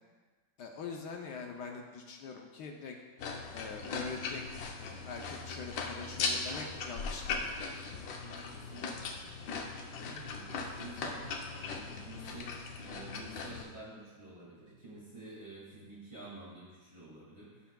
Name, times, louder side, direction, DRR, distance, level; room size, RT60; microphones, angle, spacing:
voice 1, 0.6-3.0 3.5-4.4 4.8-7.5, left 5 dB, 70° left, 2 dB, 1.3 m, -43 dB
sound 1, 3.2-13.6, left 4 dB, 90° left, 1.5 m, -39 dB
voice 2, 8.2-17.7, right 2 dB, 30° right, -7 dB, 2.5 m, -50 dB
16.0 x 5.7 x 2.3 m, 1.5 s
omnidirectional pair, 2.0 m